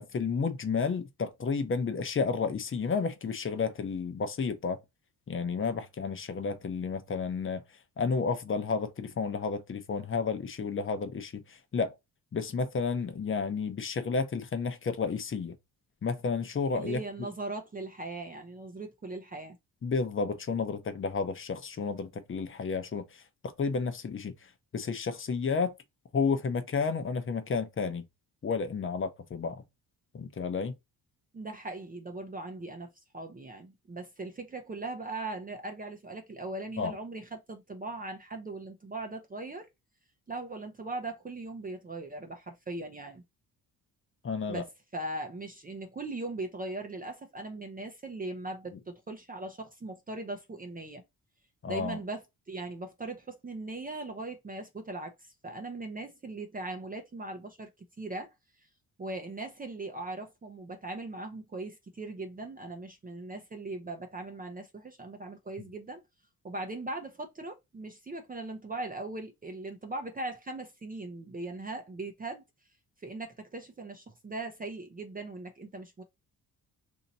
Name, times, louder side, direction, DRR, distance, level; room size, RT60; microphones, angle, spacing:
voice 1, 0.0-4.8 5.3-7.6 8.0-11.9 12.3-15.5 16.0-17.0 19.8-23.2 23.6-24.3 24.7-25.7 26.1-28.0 28.4-29.6 30.1-30.7 36.8-36.9 44.2-44.6 51.6-52.0, left 5 dB, 35° left, 0.7 m, -31 dB
voice 2, 16.7-19.6 31.3-39.7 40.3-43.2 44.5-44.7 44.9-51.0 51.6-57.7 58.0-58.3 58.6-58.7 59.0-66.0 66.4-72.4 73.0-76.0, right 2 dB, 20° right, 0.6 m, -39 dB
2.8 x 2.7 x 4.0 m
cardioid pair, 120°, 38 cm